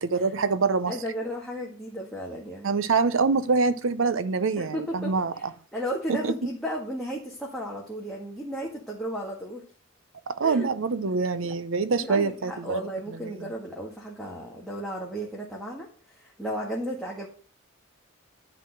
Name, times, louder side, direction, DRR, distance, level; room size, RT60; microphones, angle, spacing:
voice 1, 0.0-1.0 2.6-5.5 6.1-6.5 10.3-12.8 13.2-13.3, right 4 dB, 70° right, 13 dB, 0.6 m, -25 dB
voice 2, 0.9-2.7 4.6-5.1 5.7-9.6 10.4-10.7 11.4-11.5 11.9-17.3, equal, ahead, -4 dB, 1.6 m, -34 dB
10.5 x 4.1 x 7.6 m, 0.41 s
head